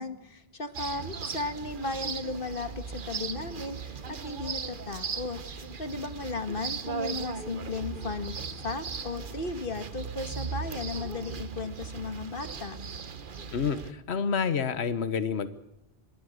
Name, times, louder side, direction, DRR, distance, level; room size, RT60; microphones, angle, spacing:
voice 1, 0.0-8.3 8.6-12.8, left 3 dB, 55° left, 9 dB, 1.9 m, -35 dB
sound 1, 0.7-13.9, right 5 dB, 55° right, 1.2 m, -38 dB
voice 2, 13.5-15.5, left 6 dB, 75° left, 12 dB, 1.4 m, -28 dB
26.0 x 20.0 x 6.5 m, 0.90 s
omnidirectional pair, 1.1 m